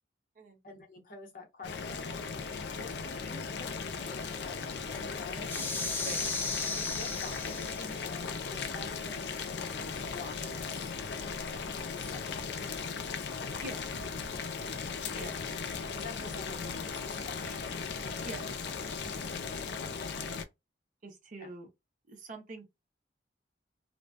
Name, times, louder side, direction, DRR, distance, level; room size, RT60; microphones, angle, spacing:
voice 1, 0.6-2.2 2.7-5.5 6.7-10.9 11.8-12.9 15.9-17.6 21.4-21.5, left 3 dB, 50° left, 0.8 m, -48 dB
Boiling, 1.6-20.4, left 5 dB, 65° left, 0.4 m, -37 dB
sound 1, 5.4-8.0, left 3 dB, 10° left, 0.5 m, -35 dB
voice 2, 21.0-21.7 22.1-22.7, right 2 dB, 45° right, 0.6 m, -44 dB
2.5 x 2.1 x 2.3 m
head